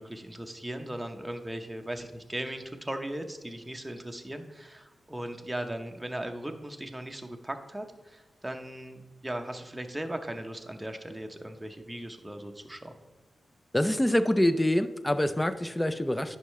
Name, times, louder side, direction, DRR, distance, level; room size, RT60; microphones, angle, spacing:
voice 1, 0.0-13.0, right 1 dB, 10° right, 4 dB, 0.9 m, -38 dB
voice 2, 13.7-16.4, left 1 dB, 10° left, 11 dB, 0.5 m, -25 dB
10.0 x 5.6 x 3.2 m, 1.2 s
cardioid pair, 75°, 0 cm